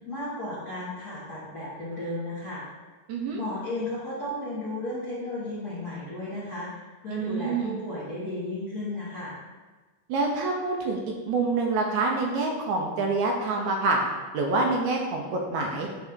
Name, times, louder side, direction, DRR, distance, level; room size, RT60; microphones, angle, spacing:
voice 1, 0.0-2.6 3.3-6.7 7.0-9.3, left 1 dB, 50° left, -10 dB, 1.2 m, -34 dB
voice 2, 3.1-3.4 7.1-7.8 10.1-11.0 11.3-14.0 14.3-15.9, right 3 dB, 75° right, 1 dB, 1.9 m, -26 dB
8.0 x 3.7 x 3.5 m, 1.3 s
omnidirectional pair, 3.6 m